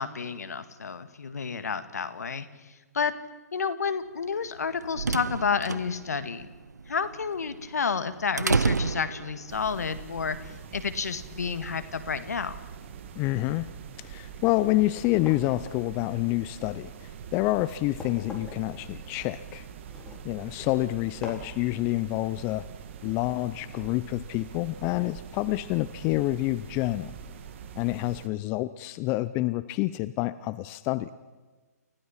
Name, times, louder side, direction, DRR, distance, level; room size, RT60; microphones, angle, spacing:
voice 1, 0.0-3.1 3.5-6.5 6.9-12.6 20.5-20.7, left 6 dB, 70° left, 11 dB, 1.8 m, -30 dB
sound 1, 4.5-9.7, right 4 dB, 85° right, 0.7 m, -30 dB
sound 2, 9.5-28.3, right 8 dB, 45° right, 1.6 m, -44 dB
voice 2, 13.2-13.7 14.0-19.7 20.2-22.7 23.0-27.1 27.8-31.1, left 18 dB, 25° left, 15 dB, 0.6 m, -28 dB
sound 3, 15.0-20.7 21.2-21.6, left 2 dB, 10° left, 4.1 m, -46 dB
29.5 x 15.5 x 5.9 m, 1.3 s
figure-of-eight pair, 130°, 9 cm